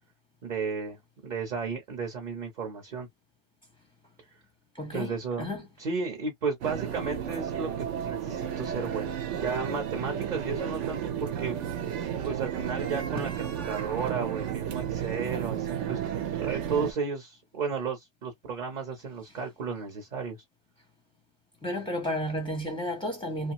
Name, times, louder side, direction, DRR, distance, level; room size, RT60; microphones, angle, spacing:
voice 1, 0.4-3.1 4.9-11.6 12.2-16.0 16.3-20.4, right 5 dB, 45° right, 0.8 m, -34 dB
voice 2, 4.7-5.1 5.4-5.6 21.6-23.5, equal, 5° left, 0.5 m, -32 dB
sound 1, 6.6-16.9, right 9 dB, 80° right, 1.0 m, -32 dB
2.8 x 2.4 x 2.8 m
omnidirectional pair, 1.2 m